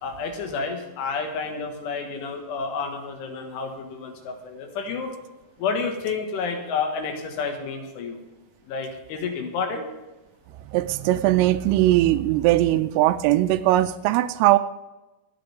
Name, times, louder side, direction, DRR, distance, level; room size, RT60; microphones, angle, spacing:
voice 1, 0.0-5.1 5.6-8.2 8.7-9.9, left 5 dB, 75° left, 3 dB, 4.0 m, -30 dB
voice 2, 10.7-14.6, right 15 dB, 85° right, 8 dB, 3.2 m, -20 dB
25.5 x 9.0 x 3.5 m, 1.1 s
omnidirectional pair, 5.8 m